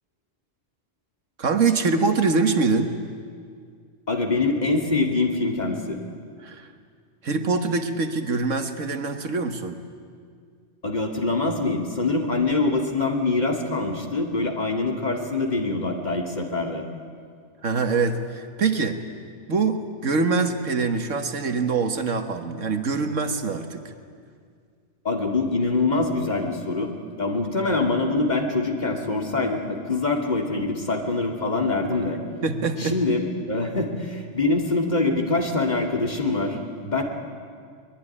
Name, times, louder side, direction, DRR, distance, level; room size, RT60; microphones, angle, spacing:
voice 1, 1.4-3.0 6.4-6.7 7.2-9.8 17.6-19.0 19.5-23.9 32.4-33.0, right 4 dB, 85° right, 7 dB, 1.8 m, -24 dB
voice 2, 4.1-6.0 10.8-16.8 25.0-26.9 27.2-32.2 32.8-33.2 33.5-37.0, left 3 dB, 35° left, 2 dB, 2.6 m, -24 dB
23.0 x 20.5 x 9.9 m, 2.1 s
omnidirectional pair, 1.3 m